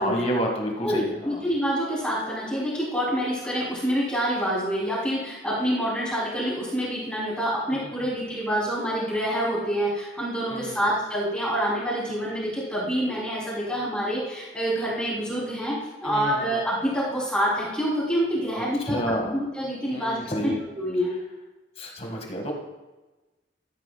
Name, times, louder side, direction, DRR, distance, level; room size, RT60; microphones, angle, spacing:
voice 1, 0.0-1.4 10.5-10.9 16.0-16.5 18.9-19.4 19.9-20.6 21.8-22.5, equal, 35° left, 1 dB, 1.8 m, -29 dB
voice 2, 0.8-21.1, equal, 5° left, -7 dB, 3.2 m, -27 dB
13.5 x 9.1 x 2.3 m, 1.1 s
head